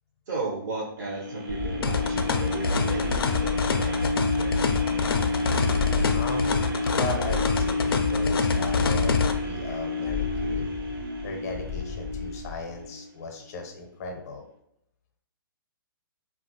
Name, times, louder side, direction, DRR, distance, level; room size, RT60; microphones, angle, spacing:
voice 1, 0.3-4.7, right 3 dB, 50° right, -3 dB, 0.6 m, -35 dB
sound 1, 1.0-13.1 13.6-13.7, left 2 dB, 85° right, 0.7 m, -29 dB
sound 2, 1.5-12.8, left 7 dB, 5° right, 0.4 m, -36 dB
sound 3, 1.8-9.3, left 5 dB, 85° left, 0.4 m, -26 dB
voice 2, 6.1-10.7 11.2-14.4, left 3 dB, 45° left, 4 dB, 0.6 m, -37 dB
2.8 x 2.4 x 2.7 m, 0.77 s
hypercardioid pair, 150°, 12 cm